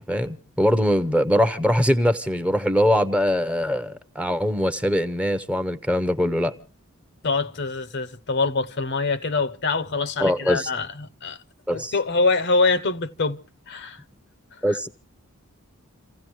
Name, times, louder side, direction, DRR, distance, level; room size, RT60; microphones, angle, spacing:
voice 1, 0.0-6.5 10.2-10.7 11.7-11.9 14.6-14.9, equal, 5° right, 0.7 m, -22 dB
voice 2, 7.2-11.4 11.7-13.4 13.7-14.0 14.7-14.8, left 3 dB, 55° left, 0.8 m, -24 dB
28.5 x 16.0 x 3.1 m
head